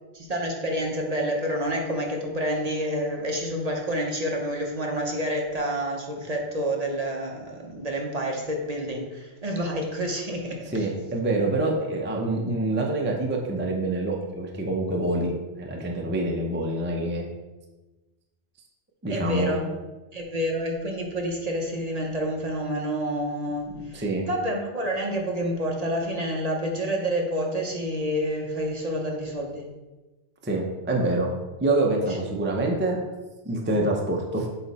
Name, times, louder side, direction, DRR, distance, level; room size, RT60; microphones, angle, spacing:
voice 1, 0.1-10.7 19.1-19.6 20.1-29.7, equal, 40° right, 0 dB, 0.8 m, -28 dB
voice 2, 10.7-15.3 15.6-17.3 19.0-19.6 23.9-24.3 30.4-31.3 31.6-33.0 33.4-34.5, right 2 dB, 15° right, 0 dB, 0.6 m, -26 dB
7.9 x 3.1 x 4.1 m, 1.1 s
omnidirectional pair, 1.1 m